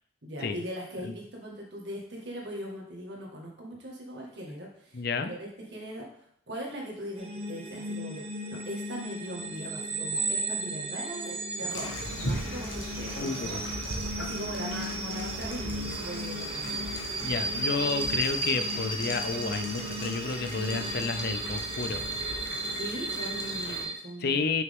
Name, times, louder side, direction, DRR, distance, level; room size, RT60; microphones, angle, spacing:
voice 1, 0.2-6.1 6.5-8.4 8.6-13.6 14.2-17.0 22.7-24.5, equal, 70° right, -1 dB, 1.7 m, -40 dB
voice 2, 4.9-5.3 13.2-13.6 17.2-22.0 24.2-24.6, left 4 dB, 55° left, 9 dB, 0.5 m, -31 dB
sound 1, 7.2-23.9, right 2 dB, 35° right, 0.8 m, -34 dB
sound 2, 11.7-23.9, left 1 dB, 75° left, 1.3 m, -39 dB
6.2 x 5.9 x 3.7 m, 0.68 s
head